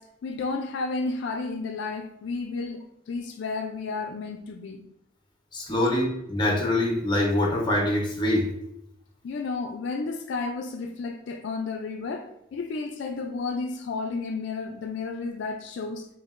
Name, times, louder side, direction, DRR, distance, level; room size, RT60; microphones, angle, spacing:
voice 1, 0.0-4.8 9.2-16.1, left 3 dB, 70° left, 0.3 m, -32 dB
voice 2, 5.5-8.5, left 1 dB, 25° left, 0.8 m, -24 dB
5.3 x 2.7 x 2.5 m
head